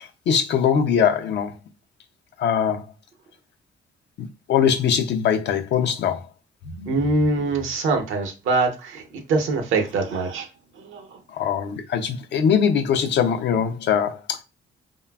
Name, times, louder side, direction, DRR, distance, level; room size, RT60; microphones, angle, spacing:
voice 1, 0.0-1.6 2.4-2.9 4.2-6.3 6.8-6.9 11.3-14.4, left 7 dB, 60° left, 0.4 m, -22 dB
voice 2, 6.9-10.5 10.8-11.2, right 3 dB, 80° right, 0.7 m, -24 dB
3.2 x 2.1 x 2.2 m
cardioid pair, 90°, 20 cm